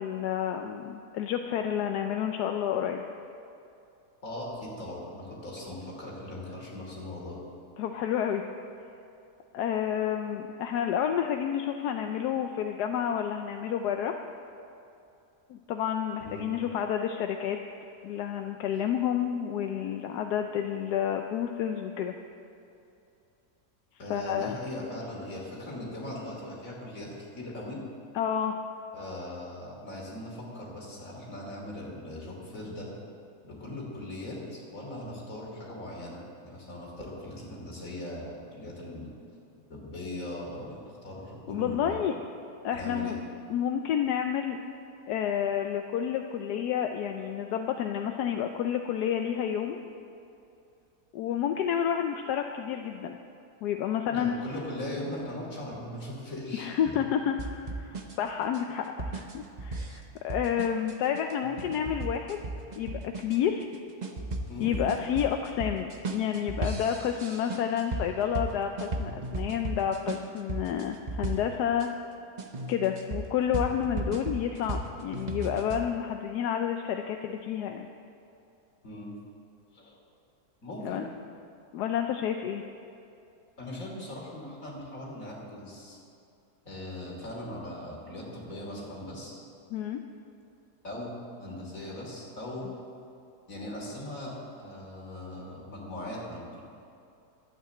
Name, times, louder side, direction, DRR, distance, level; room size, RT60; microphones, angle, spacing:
voice 1, 0.0-3.0 7.8-8.4 9.5-14.1 15.5-17.6 18.0-22.1 24.1-24.6 28.1-28.6 41.5-42.1 42.6-43.2 43.5-44.6 45.1-49.8 51.1-53.2 53.6-54.3 56.6-62.4 62.7-63.7 64.6-71.9 72.7-77.9 80.8-81.1 81.7-82.6 89.7-90.0, left 9 dB, 85° left, 5 dB, 1.2 m, -30 dB
voice 2, 4.2-7.4 16.2-16.5 24.0-27.8 28.9-32.9 33.4-39.1 39.7-42.0 42.7-43.1 54.1-57.0 64.5-64.7 78.8-79.1 79.7-80.0 80.6-81.1 83.6-86.0 86.6-89.4 90.8-92.7 93.5-96.6, left 1 dB, 55° left, -3 dB, 3.4 m, -39 dB
sound 1, 57.4-71.9 72.4-75.8, right 2 dB, 35° right, 0.8 m, -36 dB
12.0 x 9.1 x 7.7 m, 2.7 s
omnidirectional pair, 1.7 m